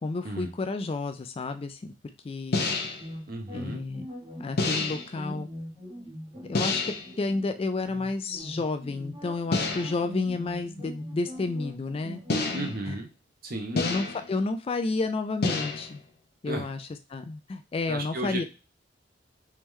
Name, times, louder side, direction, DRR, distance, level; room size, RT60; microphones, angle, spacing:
voice 1, 0.0-1.9 2.2-2.7 3.5-4.1 4.4-5.5 6.4-6.8 7.2-12.2 12.9-13.0 13.7-16.0 16.4-18.4, left 3 dB, 30° left, 8 dB, 0.3 m, -31 dB
sound 1, 2.5-3.1 4.6-5.1 6.5-7.1 9.5-10.1 12.3-12.9 13.8-14.3 15.4-16.0, left 3 dB, 55° left, 0.7 m, -28 dB
sound 2, 3.0-12.7, equal, 30° right, 1.4 m, -42 dB
voice 2, 3.3-3.8 12.5-13.1 13.4-13.9 16.4-16.7 17.9-18.4, right 2 dB, 50° right, 3 dB, 0.9 m, -34 dB
3.5 x 3.1 x 3.1 m, 0.30 s
head